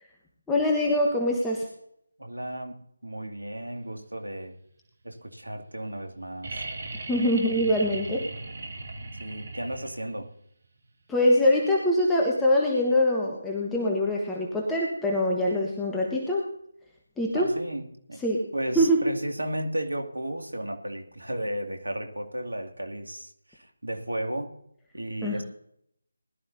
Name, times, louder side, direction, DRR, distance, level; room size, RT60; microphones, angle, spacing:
voice 1, 0.5-1.7 7.1-8.3 11.1-16.4 17.2-17.5 18.2-18.5 18.7-19.0 25.2-25.4, left 1 dB, 5° left, -3 dB, 1.3 m, -24 dB
voice 2, 2.2-2.8 3.0-4.5 5.0-6.6 9.2-10.3 17.3-18.2 18.5-24.5 24.9-25.4, right 1 dB, 80° right, 4 dB, 2.3 m, -34 dB
sound 1, 6.4-10.2 11.9-12.0, right 2 dB, 50° right, 2.7 m, -38 dB
20.5 x 12.0 x 2.8 m, 0.71 s
figure-of-eight pair, 155°, 0 cm